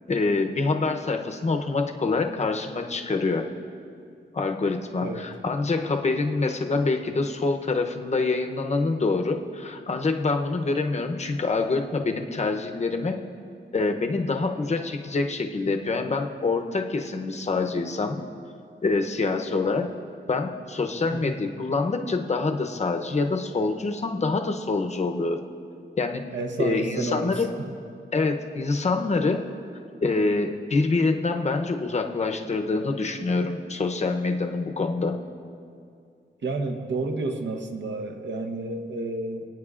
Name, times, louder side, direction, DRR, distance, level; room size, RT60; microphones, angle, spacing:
voice 1, 0.1-3.5 4.3-13.2 13.7-18.2 18.8-19.9 20.3-25.4 26.0-26.2 26.6-27.5 28.1-29.4 30.0-35.2, left 3 dB, 35° left, 4 dB, 0.7 m, -26 dB
voice 2, 26.3-27.5 36.4-39.5, right 2 dB, 75° right, 5 dB, 0.9 m, -30 dB
27.0 x 9.1 x 2.4 m, 2.4 s
wide cardioid pair, 160°, 19 cm